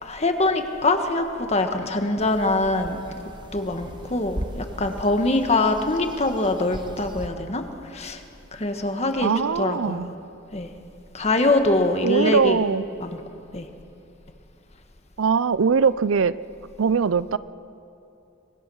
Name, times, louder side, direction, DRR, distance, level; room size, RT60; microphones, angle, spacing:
voice 1, 0.0-3.0 3.5-7.6 7.9-8.2 8.5-10.1 10.5-10.7 11.1-12.6 13.0-13.2 13.5-13.7, left 2 dB, 35° left, 6 dB, 1.5 m, -23 dB
sound 1, 2.2-7.3, right 1 dB, 25° right, 1.2 m, -39 dB
voice 2, 9.2-10.1 12.0-12.9 15.2-16.4 16.8-17.4, right 5 dB, 80° right, 17 dB, 0.5 m, -21 dB
25.0 x 20.5 x 6.4 m, 2.7 s
head